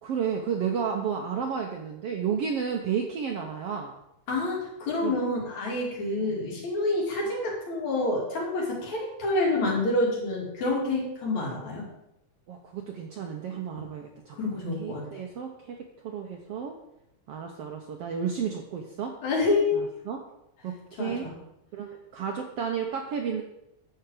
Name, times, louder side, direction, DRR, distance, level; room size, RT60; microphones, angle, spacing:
voice 1, 0.0-3.9 5.0-5.1 6.2-6.4 12.5-15.8 16.0-16.8 17.3-19.2 19.8-20.2 20.6-21.3 21.7-23.4, right 7 dB, 70° right, 3 dB, 1.5 m, -32 dB
voice 2, 4.3-11.9 14.3-15.2 19.2-19.8 21.0-21.3, left 2 dB, 60° left, -3 dB, 4.1 m, -28 dB
10.5 x 7.9 x 5.0 m, 0.84 s
omnidirectional pair, 3.6 m